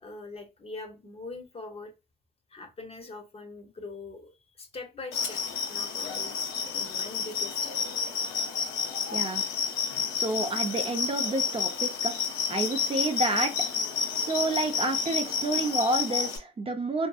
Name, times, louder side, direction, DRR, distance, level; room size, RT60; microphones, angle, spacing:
voice 1, 0.0-1.9 2.5-5.4 5.7-7.8, left 3 dB, 30° left, 6 dB, 0.7 m, -43 dB
sound 1, 5.1-16.4, left 6 dB, 85° left, 0.6 m, -30 dB
voice 2, 9.1-9.4 10.1-13.5 14.1-17.1, right 2 dB, 30° right, 5 dB, 0.5 m, -29 dB
2.6 x 2.5 x 2.2 m, 0.26 s
cardioid pair, 90°, 20 cm